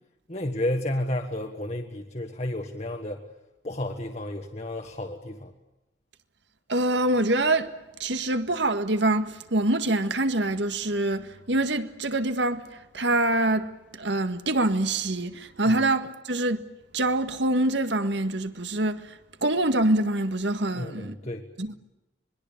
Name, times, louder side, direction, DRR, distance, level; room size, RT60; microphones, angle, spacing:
voice 1, 0.3-3.2 3.6-5.5 15.6-15.8 20.7-21.5, left 1 dB, 35° left, 1.6 m, -31 dB
voice 2, 6.7-7.7 8.0-16.6 16.9-21.2 21.6-21.7, right 2 dB, 75° right, 1.7 m, -25 dB
26.0 x 21.0 x 8.7 m
head